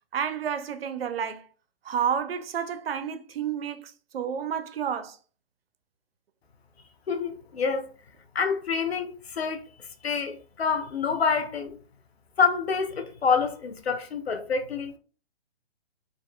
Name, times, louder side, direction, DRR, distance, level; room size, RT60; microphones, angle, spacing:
voice 1, 0.1-1.5 1.8-5.2, right 8 dB, 70° right, 0.5 m, -30 dB
voice 2, 7.1-7.9 8.3-9.6 10.0-11.8 12.4-15.0, left 5 dB, 90° left, 0.6 m, -27 dB
2.6 x 2.4 x 2.2 m
figure-of-eight pair, 140°, 31 cm